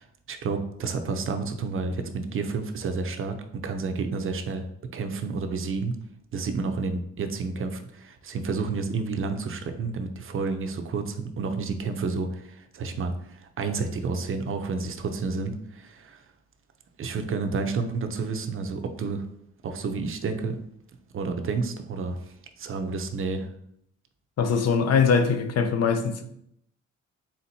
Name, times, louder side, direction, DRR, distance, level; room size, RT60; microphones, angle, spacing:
voice 1, 0.0-4.7 4.9-6.0 6.3-16.2 17.0-19.3 19.6-20.6 21.1-23.5, right 4 dB, 45° right, 0.6 m, -30 dB
voice 2, 24.4-26.2, left 5 dB, 55° left, 0.6 m, -22 dB
4.2 x 3.7 x 2.7 m
cardioid pair, 90°, 30 cm